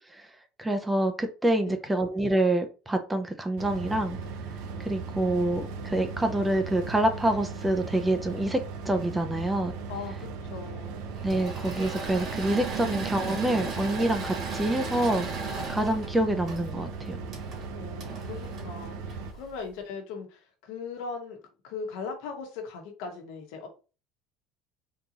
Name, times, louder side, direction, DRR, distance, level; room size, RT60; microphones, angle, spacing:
voice 1, 0.6-4.2 4.8-8.6 8.9-9.7 11.2-15.3 15.7-17.2, right 1 dB, 10° right, 0.5 m, -26 dB
sound 1, 3.6-19.3, right 4 dB, 75° right, 0.6 m, -38 dB
voice 2, 9.9-11.0 12.8-12.9 13.2-13.3 17.7-21.4 21.6-23.7, left 5 dB, 80° left, 1.0 m, -39 dB
Engine / Mechanisms, 11.1-19.5, right 4 dB, 45° right, 1.6 m, -36 dB
3.8 x 2.5 x 2.9 m
cardioid pair, 130°, 0 cm